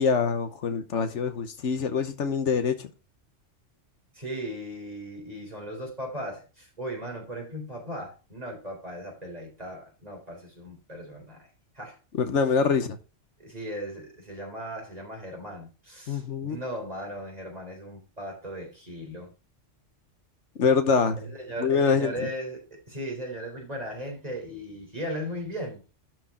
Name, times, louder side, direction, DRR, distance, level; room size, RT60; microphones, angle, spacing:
voice 1, 0.0-2.9 12.1-13.0 16.1-16.6 20.6-21.2 21.6-22.3, left 5 dB, 75° left, 1.3 m, -25 dB
voice 2, 4.1-11.5 11.7-12.0 13.4-19.3 21.2-25.9, equal, 30° right, 3.9 m, -37 dB
12.0 x 4.7 x 4.3 m
omnidirectional pair, 1.2 m